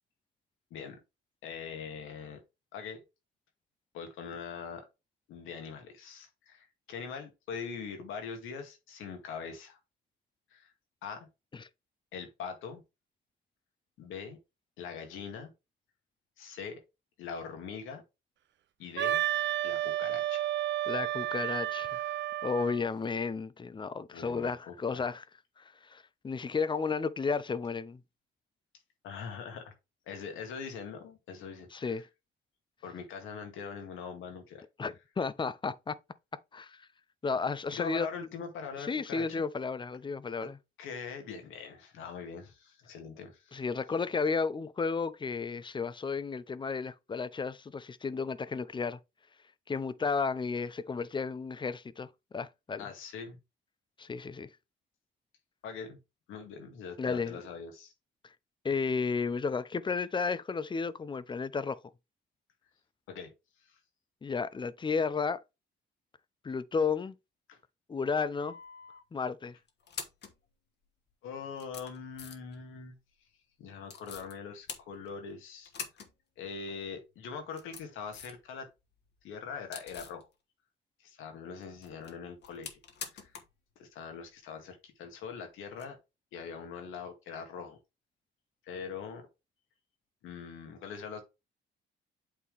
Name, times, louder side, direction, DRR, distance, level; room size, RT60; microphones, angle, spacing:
voice 1, 1.4-2.4 2.7-3.0 3.9-4.9 5.3-9.8 10.5-10.7 11.0-11.3 12.1-12.8 14.0-14.4 14.8-15.5 16.4-16.8 17.2-18.0 18.8-19.2 19.6-20.5 24.1-25.0 29.0-29.7 30.1-32.0 32.8-34.6 37.7-39.4 40.4-40.5 40.8-43.6 52.8-53.4 55.6-56.0 56.3-57.9 63.1-63.3 63.6-63.8 67.5-67.6 71.2-73.0 73.6-75.7 76.4-78.7 79.2-80.3 81.0-82.8 83.1-83.3 83.8-86.0 86.3-87.8 88.6-89.2 90.2-91.2, left 6 dB, 90° left, 2.0 m, -42 dB
Wind instrument woodwind instrument, 19.0-22.8, right 13 dB, 65° right, 0.6 m, -31 dB
voice 2, 20.9-22.0 22.4-25.2 25.6-25.7 25.9-28.0 31.7-32.1 34.8-36.0 36.5-36.8 37.2-38.1 38.9-40.6 43.5-49.0 49.7-52.1 52.3-52.8 54.0-54.5 57.0-57.4 58.6-61.8 64.2-65.4 66.4-67.2 67.9-68.6 69.1-69.6, left 5 dB, 25° left, 0.6 m, -33 dB
sound 1, 68.4-69.0 69.7-70.4 71.1-71.2 71.5-72.6 73.9-74.3 74.7-75.3 75.6-76.1 76.4-76.5 77.3-78.4 78.8-80.2 81.6-83.6 83.8-83.9 85.7-85.8, left 6 dB, 60° left, 1.4 m, -45 dB
8.5 x 3.7 x 3.4 m
cardioid pair, 90°, 20 cm